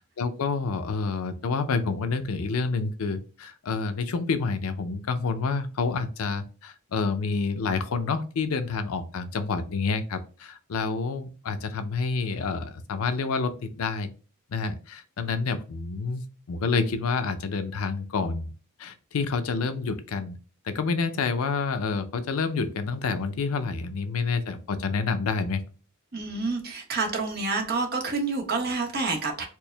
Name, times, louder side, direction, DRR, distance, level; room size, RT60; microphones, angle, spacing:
voice 1, 0.2-14.1 14.5-18.5 18.8-20.4 20.7-25.6, left 4 dB, 85° left, 10 dB, 0.5 m, -28 dB
voice 2, 26.1-29.5, right 3 dB, 45° right, 2 dB, 0.8 m, -28 dB
4.5 x 2.0 x 3.2 m, 0.36 s
head